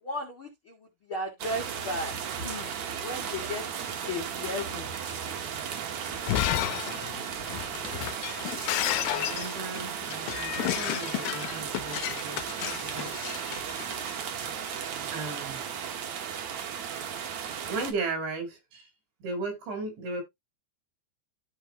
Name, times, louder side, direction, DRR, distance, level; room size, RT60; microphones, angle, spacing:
voice 1, 0.0-3.6 4.0-4.9, left 1 dB, 55° left, 1.4 m, -36 dB
sound 1, 1.4-17.9, right 8 dB, 65° right, 1.9 m, -35 dB
Shatter, 6.1-14.2, left 15 dB, 80° left, 2.4 m, -32 dB
voice 2, 9.1-12.4 12.8-13.1 14.6-15.6 17.7-18.9 19.2-20.2, right 3 dB, 80° right, 5.9 m, -36 dB
13.5 x 5.0 x 2.8 m
omnidirectional pair, 5.1 m